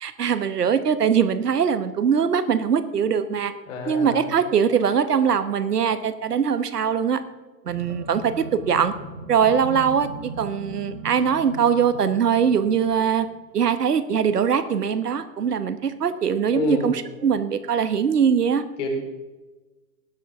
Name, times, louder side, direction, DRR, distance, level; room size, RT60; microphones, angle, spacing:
voice 1, 0.0-3.5 3.9-7.2 7.6-8.9 9.3-13.3 13.5-18.6, right 7 dB, 70° right, 12 dB, 1.0 m, -22 dB
voice 2, 3.7-4.2 16.5-16.9 18.8-18.9, left 5 dB, 45° left, 2 dB, 3.7 m, -28 dB
sound 1, 7.6-13.3, right 4 dB, 55° right, 3.6 m, -38 dB
18.5 x 11.5 x 3.5 m, 1.2 s
figure-of-eight pair, 110°, 48 cm